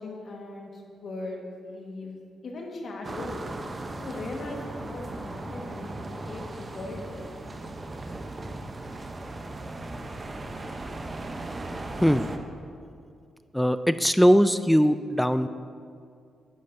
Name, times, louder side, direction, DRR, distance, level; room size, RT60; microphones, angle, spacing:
voice 1, 0.0-2.1 2.4-3.4 3.9-7.3, left 2 dB, 60° left, 0 dB, 1.5 m, -39 dB
sound 1, 3.0-12.4, right 2 dB, 35° right, 0.8 m, -37 dB
voice 2, 13.5-15.5, equal, 5° left, 12 dB, 0.3 m, -20 dB
10.5 x 8.8 x 2.7 m, 2.4 s
supercardioid pair, 55°, 0 cm